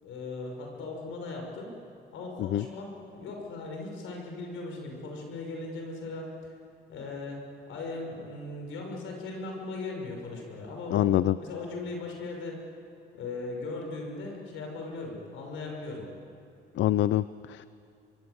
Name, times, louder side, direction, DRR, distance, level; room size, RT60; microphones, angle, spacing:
voice 1, 0.0-1.8 2.1-6.6 6.9-7.4 7.7-11.1 11.4-12.7 13.1-16.1, left 3 dB, 85° left, 1 dB, 6.0 m, -38 dB
voice 2, 10.9-11.4 16.7-17.7, left 13 dB, 70° left, 15 dB, 0.5 m, -25 dB
25.0 x 23.0 x 8.1 m, 2.4 s
cardioid pair, 90°, 20 cm